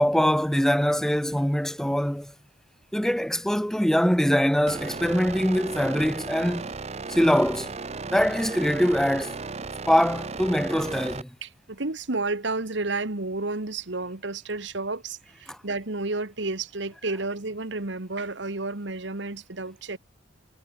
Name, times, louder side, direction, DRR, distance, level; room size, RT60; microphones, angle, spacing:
voice 1, 0.0-2.3 2.9-6.7 7.1-7.7 8.1-9.4 9.9-11.3, equal, ahead, 0.6 m, -23 dB
sound 1, 4.7-11.2, right 4 dB, 35° right, 0.8 m, -35 dB
voice 2, 11.4-20.0, right 3 dB, 65° right, 1.6 m, -31 dB
head